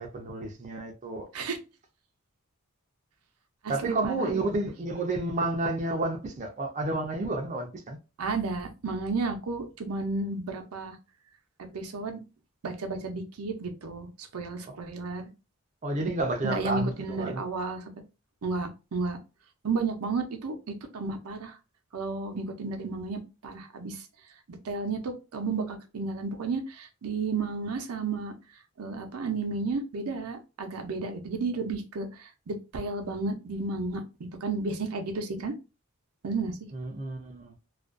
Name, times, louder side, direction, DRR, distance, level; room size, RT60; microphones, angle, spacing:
voice 1, 0.0-1.3 3.7-8.0 15.8-17.4 36.7-37.5, right 2 dB, 35° right, 0.4 m, -30 dB
voice 2, 3.6-4.4 8.2-11.0 11.7-12.2 12.6-15.2 16.4-17.8 18.4-19.2 19.6-21.6 21.9-24.1 24.5-28.3 28.8-35.5 36.2-36.7, right 3 dB, 90° right, 0.5 m, -32 dB
2.4 x 2.2 x 2.4 m
head